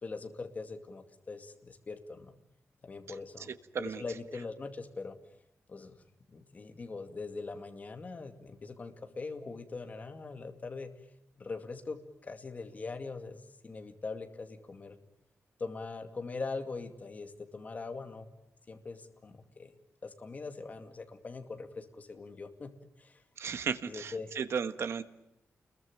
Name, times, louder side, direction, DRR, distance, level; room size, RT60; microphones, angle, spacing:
voice 1, 0.0-2.3 2.8-5.2 5.7-6.0 6.3-10.9 11.4-15.0 15.6-18.3 18.7-19.7 20.0-22.7 23.0-23.2 23.8-24.3, left 4 dB, 30° left, 6 dB, 2.4 m, -42 dB
voice 2, 23.4-25.0, right 6 dB, 60° right, 11 dB, 1.5 m, -34 dB
29.5 x 22.0 x 9.0 m, 0.85 s
wide cardioid pair, 170°, 5 cm